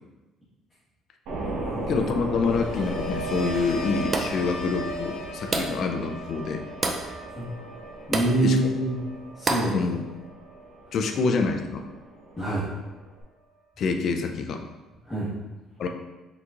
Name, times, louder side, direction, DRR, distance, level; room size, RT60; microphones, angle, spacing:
sound 1, 1.2-13.2, right 1 dB, 65° right, 0.9 m, -37 dB
voice 1, 1.9-6.6 8.4-8.6 9.7-10.0 10.9-11.9 13.8-14.6 15.8-15.9, left 4 dB, 50° left, 5 dB, 0.4 m, -26 dB
sound 2, 2.3-12.1 12.4-12.9, right 1 dB, 85° left, 0.7 m, -39 dB
sound 3, 4.1-4.5 5.5-5.9 6.8-7.1 8.1-8.4 9.5-9.8, right 3 dB, 25° right, 0.3 m, -27 dB
voice 2, 8.1-8.9 9.4-9.9 12.4-12.7 15.1-15.3, right 1 dB, 10° left, -12 dB, 1.2 m, -25 dB
4.5 x 3.9 x 2.4 m, 1.1 s
cardioid pair, 150°, 0 cm